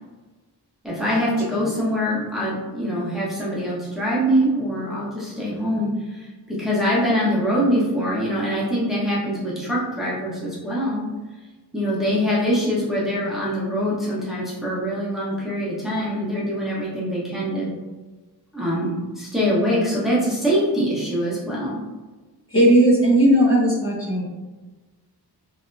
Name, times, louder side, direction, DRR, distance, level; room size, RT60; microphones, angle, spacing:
voice 1, 0.8-11.0 11.7-17.7 18.5-21.8, equal, ahead, -7 dB, 1.0 m, -24 dB
voice 2, 22.5-24.2, right 1 dB, 30° left, -6 dB, 1.0 m, -17 dB
3.4 x 2.7 x 2.6 m, 1.3 s
wide cardioid pair, 90°, 41 cm